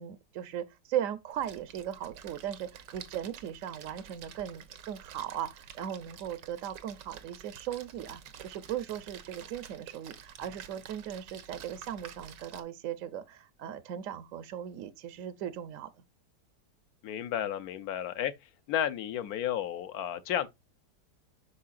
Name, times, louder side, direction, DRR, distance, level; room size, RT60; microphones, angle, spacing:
voice 1, 0.0-15.9, right 10 dB, 65° right, 0.8 m, -38 dB
Splash splatter, 1.3-12.6, right 8 dB, 85° right, 1.5 m, -49 dB
voice 2, 17.0-18.3 18.7-20.5, left 10 dB, 65° left, 1.1 m, -32 dB
8.5 x 5.8 x 2.4 m
omnidirectional pair, 1.9 m